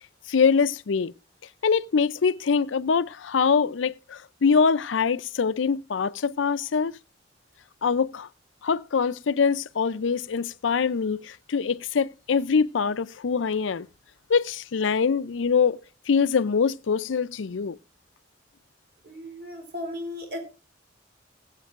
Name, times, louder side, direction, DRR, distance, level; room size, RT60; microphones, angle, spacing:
voice 1, 0.3-1.1 1.6-6.9 7.8-8.3 8.6-13.9 14.3-15.8 16.1-17.8, left 5 dB, 85° left, 0.5 m, -24 dB
voice 2, 19.0-20.4, left 1 dB, 55° right, 4.2 m, -35 dB
20.0 x 8.2 x 2.5 m
head